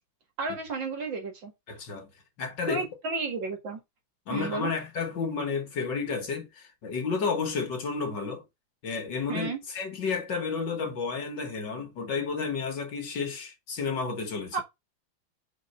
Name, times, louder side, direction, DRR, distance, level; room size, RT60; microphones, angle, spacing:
voice 1, 0.4-1.5 2.7-3.8 4.3-4.7 9.3-9.6 14.5-14.6, right 4 dB, 60° right, 2.5 m, -32 dB
voice 2, 1.7-2.1 2.4-2.9 4.3-8.4 8.8-14.6, left 5 dB, 60° left, 2.0 m, -31 dB
4.8 x 4.3 x 5.5 m
omnidirectional pair, 2.3 m